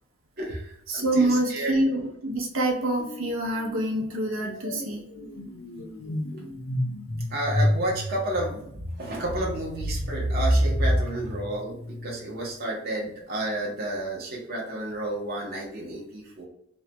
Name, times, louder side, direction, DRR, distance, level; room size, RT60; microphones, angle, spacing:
voice 1, 0.4-1.8 7.3-16.5, right 1 dB, 50° right, -3 dB, 0.8 m, -31 dB
voice 2, 0.9-5.0, right 1 dB, 85° right, 1 dB, 0.8 m, -26 dB
sound 1, 3.0-3.3 3.6-12.4, equal, 85° left, 0.7 m, -29 dB
3.1 x 2.2 x 2.9 m, 0.72 s
head